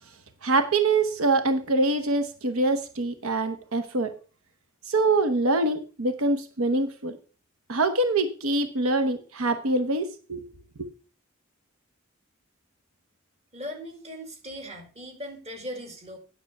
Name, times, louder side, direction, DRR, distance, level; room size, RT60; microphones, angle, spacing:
voice 1, 0.4-4.1 4.9-7.2 7.7-10.5 10.8-10.9, right 2 dB, 85° right, 9 dB, 0.9 m, -24 dB
voice 2, 13.5-16.2, equal, 30° right, 4 dB, 2.2 m, -39 dB
9.3 x 6.7 x 5.3 m, 0.38 s
head